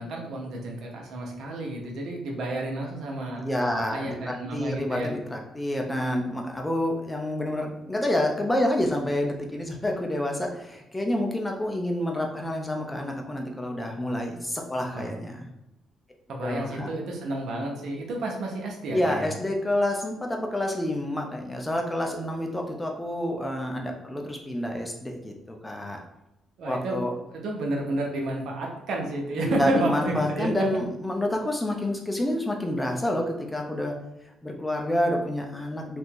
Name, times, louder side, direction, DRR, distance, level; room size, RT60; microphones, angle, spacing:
voice 1, 0.0-5.1 14.9-15.1 16.3-19.2 26.6-27.0 27.3-30.5, right 1 dB, 70° right, 0 dB, 0.8 m, -31 dB
voice 2, 3.4-15.5 16.4-16.9 18.9-26.0 26.6-27.1 29.4-34.0 34.4-36.0, left 1 dB, 10° left, 1 dB, 0.6 m, -28 dB
2.7 x 2.5 x 3.6 m, 0.89 s
cardioid pair, 90°, 0 cm